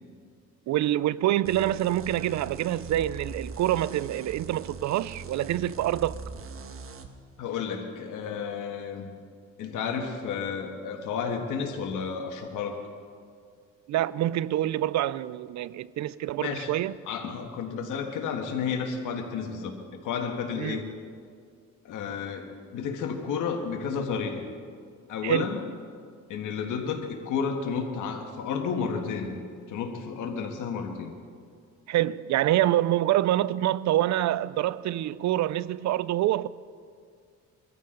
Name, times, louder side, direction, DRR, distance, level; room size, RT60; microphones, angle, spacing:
voice 1, 0.7-6.2 13.9-16.9 20.6-20.8 25.2-25.5 31.9-36.5, right 13 dB, 65° right, 0.5 m, -26 dB
sound 1, 1.4-7.1, right 4 dB, 45° right, 1.3 m, -41 dB
voice 2, 7.4-9.1 9.6-12.8 16.4-16.7 17.1-19.7 20.0-20.9 21.8-24.4 25.1-25.6 26.3-29.4 29.7-31.1, left 6 dB, 85° left, 1.6 m, -31 dB
23.0 x 14.0 x 3.9 m
cardioid pair, 90°, 30 cm